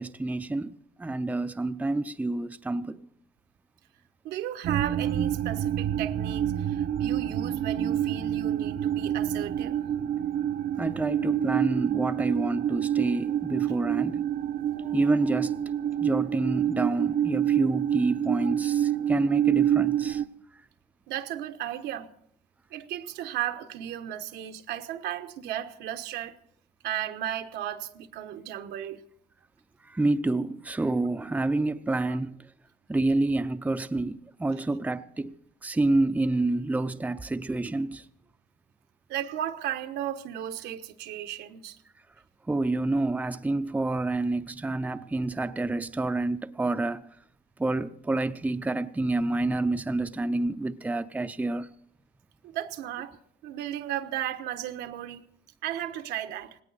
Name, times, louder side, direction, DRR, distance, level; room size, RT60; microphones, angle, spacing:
voice 1, 0.0-3.1 10.8-14.2 14.8-15.5 16.0-20.2 29.8-32.4 32.9-35.3 35.6-38.1 42.5-47.2 47.6-51.7, right 2 dB, 10° right, 0.6 m, -28 dB
voice 2, 4.2-9.8 18.4-18.5 21.1-22.1 22.7-26.4 26.8-29.0 32.1-32.2 39.1-41.8 52.4-53.2 53.4-55.2 55.6-56.6, right 11 dB, 85° right, 1.2 m, -35 dB
sound 1, 4.6-20.3, right 10 dB, 55° right, 0.8 m, -27 dB
18.5 x 18.0 x 4.1 m
cardioid pair, 110°, 17 cm